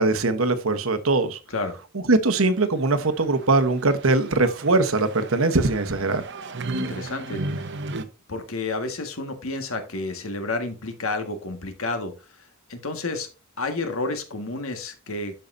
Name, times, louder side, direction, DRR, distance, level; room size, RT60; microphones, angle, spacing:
voice 1, 0.0-1.4 1.9-6.2, right 3 dB, 75° right, 1.1 m, -21 dB
sound 1, 2.4-8.0, right 2 dB, 55° right, 0.8 m, -35 dB
voice 2, 6.7-7.4 8.3-12.1 12.7-13.3 13.6-15.4, left 3 dB, 75° left, 1.7 m, -30 dB
12.0 x 5.7 x 2.7 m
head